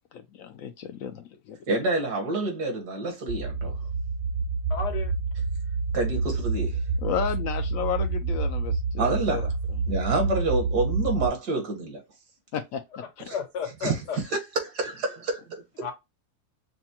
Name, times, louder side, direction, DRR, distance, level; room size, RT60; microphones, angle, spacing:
voice 1, 0.1-1.6 7.0-9.4 12.5-12.8 13.2-13.3, left 8 dB, 70° left, 0.8 m, -32 dB
voice 2, 1.7-3.7 5.9-6.8 9.0-9.5 9.9-12.0 13.3-13.4 13.8-14.0 14.6-15.8, right 2 dB, 75° right, 1.9 m, -28 dB
sound 1, 3.3-11.3, right 4 dB, 55° right, 1.0 m, -28 dB
voice 3, 4.7-5.1 13.0-14.2 15.8-15.9, left 6 dB, 85° left, 1.7 m, -33 dB
6.0 x 2.2 x 2.7 m
omnidirectional pair, 1.7 m